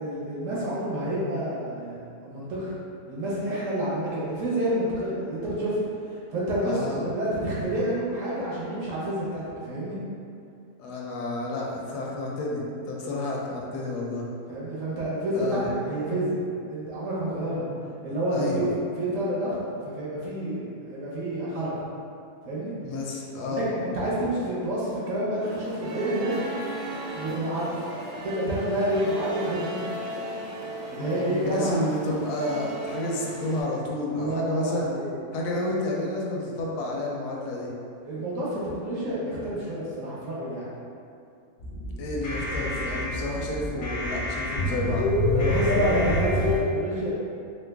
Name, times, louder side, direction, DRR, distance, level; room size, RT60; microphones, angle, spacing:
voice 1, 0.0-2.0 2.2-2.7 3.1-5.8 6.3-10.0 14.5-16.4 16.7-17.6 18.0-18.7 19.0-19.6 19.8-20.6 20.9-21.7 22.4-22.7 23.5-26.3 27.1-27.8 28.2-29.9 30.9-31.8 34.2-35.2 38.0-40.7 45.3-47.1, right 1 dB, 60° right, -8 dB, 1.0 m, -29 dB
voice 2, 6.6-7.1 10.8-14.2 15.3-15.7 18.3-18.7 22.8-23.6 31.0-34.9 35.3-37.7 42.0-45.1, left 2 dB, 80° left, -2 dB, 1.1 m, -30 dB
sound 1, 25.4-33.6, right 1 dB, 85° right, 1.1 m, -36 dB
sound 2, 41.6-46.6, left 1 dB, 50° left, 0.6 m, -26 dB
3.1 x 2.0 x 3.3 m, 2.5 s
omnidirectional pair, 1.7 m